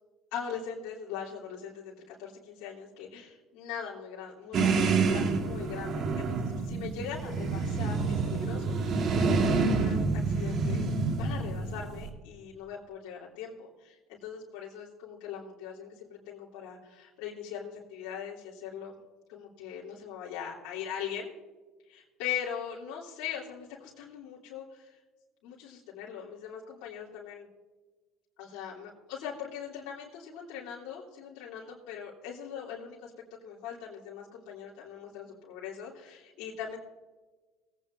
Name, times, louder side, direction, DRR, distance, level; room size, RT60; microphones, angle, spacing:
voice 1, 0.3-10.9 11.2-13.7 14.2-18.9 19.3-21.3 21.9-25.0 25.4-27.5 28.4-33.1 33.4-36.8, left 8 dB, 80° left, -6 dB, 3.0 m, -41 dB
sound 1, 4.5-12.1, right 4 dB, 50° right, 1.8 m, -28 dB
20.5 x 9.2 x 2.7 m, 1.3 s
supercardioid pair, 105°, 0 cm